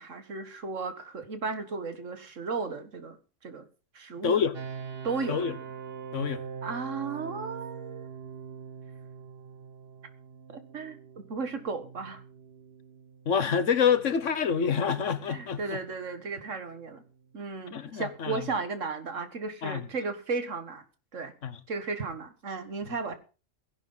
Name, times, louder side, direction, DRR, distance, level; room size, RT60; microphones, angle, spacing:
voice 1, 0.0-3.2 3.4-3.7 3.9-4.4 5.0-5.4 6.6-8.1 10.5-11.0 11.3-12.2 15.3-17.0 17.3-20.8 21.1-21.3 21.7-23.2, right 4 dB, 70° right, 2.0 m, -34 dB
voice 2, 4.2-4.5 5.3-5.5 6.1-6.4 13.3-15.8 17.7-18.5 19.6-19.8 21.4-21.6, left 7 dB, 70° left, 1.5 m, -27 dB
sound 1, 4.5-17.4, right 6 dB, 50° right, 1.5 m, -44 dB
16.0 x 11.0 x 5.6 m
omnidirectional pair, 1.4 m